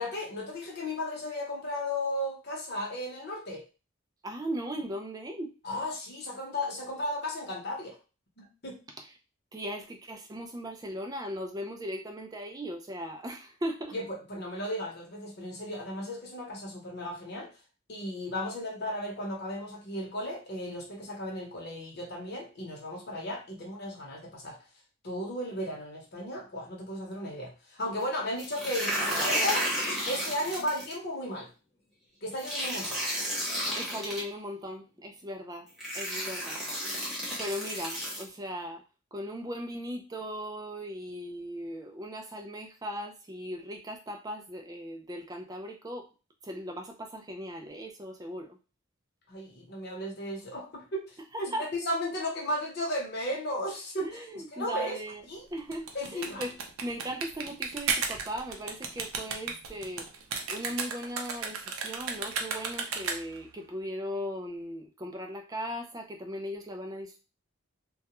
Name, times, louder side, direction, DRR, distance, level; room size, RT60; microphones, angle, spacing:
voice 1, 0.0-3.6 5.6-8.0 8.4-8.8 13.9-14.0 14.3-17.5 17.9-24.6 25.0-29.0 29.2-29.7 30.1-31.5 32.2-33.0 49.3-51.0 51.4-54.1 54.5-54.9 55.3-55.4 55.9-56.4, left 1 dB, 50° left, -1 dB, 0.8 m, -35 dB
voice 2, 4.2-5.6 9.0-9.1 9.5-14.0 28.8-29.7 33.7-35.7 35.9-36.6 37.4-38.8 39.1-46.1 46.4-48.6 51.3-51.7 54.0-55.2 55.5-67.2, equal, 15° right, 3 dB, 0.3 m, -38 dB
sound 1, 28.4-30.9 32.4-34.2 35.2-35.3 35.8-38.2, equal, ahead, 0.8 m, -32 dB
sound 2, 55.6-63.5, right 5 dB, 80° right, 0.5 m, -34 dB
2.2 x 2.1 x 2.9 m, 0.32 s
head